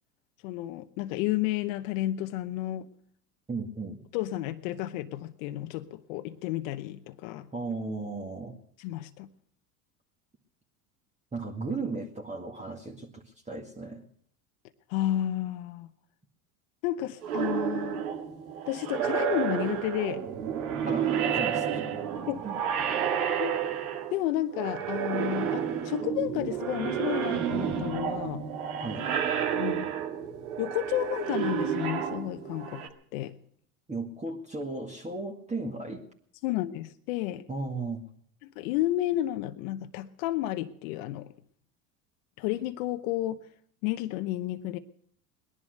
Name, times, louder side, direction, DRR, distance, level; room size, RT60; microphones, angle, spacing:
voice 1, 0.4-2.9 4.1-7.5 8.8-9.3 14.9-15.9 16.8-18.0 18.7-20.2 22.3-22.4 23.4-23.6 24.1-28.4 29.5-29.9 30.6-33.3 36.4-37.4 38.6-41.3 42.4-43.4 43.8-44.8, left 14 dB, 70° left, 9 dB, 0.9 m, -31 dB
voice 2, 3.5-4.0 7.5-8.6 11.3-14.0 20.9-22.0 22.4-22.6 28.8-29.1 33.9-36.0 37.5-38.0, right 3 dB, 15° right, 0 dB, 2.0 m, -35 dB
sound 1, 17.2-24.3 24.5-32.9, right 8 dB, 90° right, 2.0 m, -30 dB
19.5 x 11.0 x 6.5 m, 0.62 s
hypercardioid pair, 95°, 42 cm